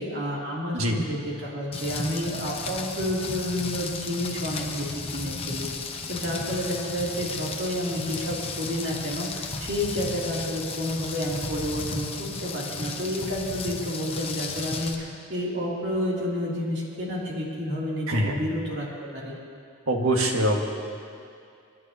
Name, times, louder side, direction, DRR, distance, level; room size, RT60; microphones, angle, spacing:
voice 1, 0.0-5.7 6.1-19.4, equal, 55° right, -4 dB, 2.8 m, -30 dB
Rain, 1.7-14.9, left 4 dB, 30° left, 0.8 m, -34 dB
voice 2, 18.1-18.4 19.9-20.6, right 1 dB, 85° right, 1 dB, 1.6 m, -23 dB
29.0 x 11.0 x 2.8 m, 2.4 s
head